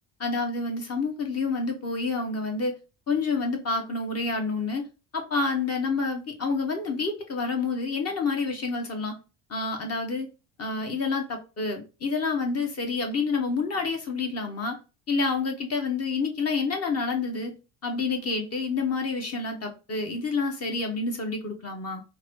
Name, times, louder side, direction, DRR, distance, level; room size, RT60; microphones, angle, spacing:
voice 1, 0.2-2.8 3.1-4.9 5.1-9.1 9.5-10.3 10.6-14.8 15.1-17.5 17.8-22.0, left 4 dB, 40° left, 0.8 m, -28 dB
3.8 x 2.1 x 3.0 m
cardioid pair, 90°, 38 cm